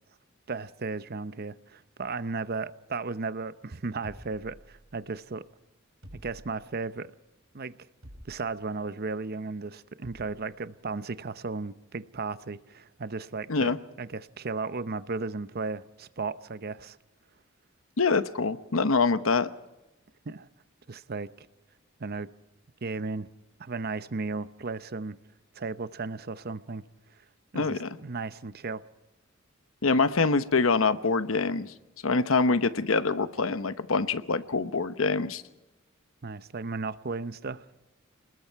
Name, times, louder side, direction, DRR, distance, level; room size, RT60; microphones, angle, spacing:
voice 1, 0.5-5.5 6.2-7.1 7.5-7.7 8.2-17.0 20.3-20.5 20.9-21.5 22.0-22.3 22.8-23.3 23.6-25.2 25.6-26.8 27.5-28.8 36.2-37.6, right 4 dB, 50° right, 0.7 m, -35 dB
sound 1, 4.0-5.1 6.0-6.9 8.0-8.7 10.0-10.5, equal, 85° right, 6.9 m, -50 dB
voice 2, 18.0-19.5 27.5-27.9 29.8-31.7 32.0-35.4, left 4 dB, 85° left, 1.0 m, -25 dB
28.5 x 20.5 x 4.6 m
head